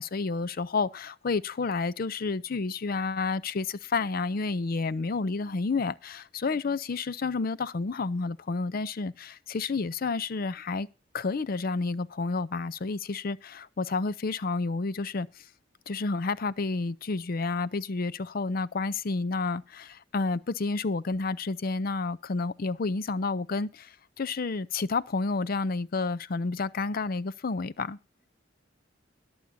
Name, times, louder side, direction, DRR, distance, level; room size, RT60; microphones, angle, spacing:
voice 1, 0.0-10.9 11.1-15.3 15.9-23.9 24.2-28.0, left 3 dB, 50° left, 0.5 m, -30 dB
21.0 x 7.1 x 2.7 m
head